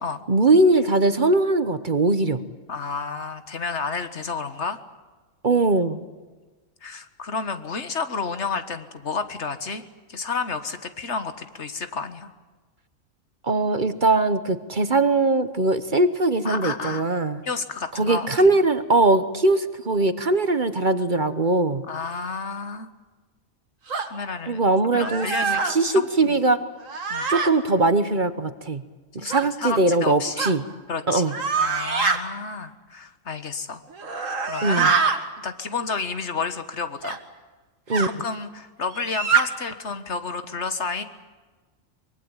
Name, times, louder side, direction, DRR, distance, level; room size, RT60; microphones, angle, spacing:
voice 1, 0.3-2.4 5.4-6.0 13.4-17.4 17.9-21.8 24.5-25.3 25.7-26.6 27.3-28.8 29.1-30.6 31.1-31.3 34.6-34.9 37.9-38.1, right 2 dB, 40° right, 12 dB, 1.1 m, -21 dB
voice 2, 2.7-4.8 6.8-9.8 10.1-12.3 16.5-17.1 17.4-18.3 18.5-18.6 21.9-22.9 24.0-24.6 24.9-26.4 27.1-27.3 29.2-30.5 30.9-33.8 34.5-34.9 35.4-37.2 38.2-41.0, left 4 dB, 60° left, 10 dB, 1.9 m, -31 dB
sound 1, 23.9-24.1 24.9-25.8 26.8-27.5 29.3-29.5 30.4-30.6 31.3-32.2 33.9-35.2 37.0-37.2 37.9-38.1 38.9-39.4, right 5 dB, 75° right, 2.4 m, -24 dB
24.0 x 23.0 x 9.0 m, 1.3 s
omnidirectional pair, 1.4 m